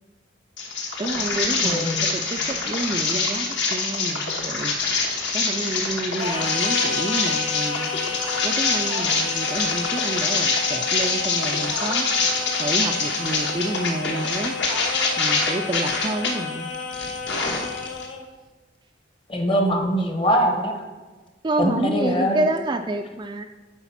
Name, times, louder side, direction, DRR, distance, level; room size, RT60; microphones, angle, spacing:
sound 1, 0.6-16.3 16.7-18.1, left 3 dB, 60° left, 1.2 m, -25 dB
voice 1, 1.0-4.8 5.3-7.9 8.4-12.1 12.6-14.6 15.2-16.7 21.4-23.4, right 2 dB, 25° right, 5 dB, 0.3 m, -29 dB
voice 2, 1.6-2.1 19.3-20.7 21.6-22.4, equal, 25° left, 4 dB, 0.9 m, -22 dB
Singing, 6.2-18.3, left 5 dB, 85° left, 1.0 m, -31 dB
8.1 x 4.9 x 5.8 m, 1.3 s
head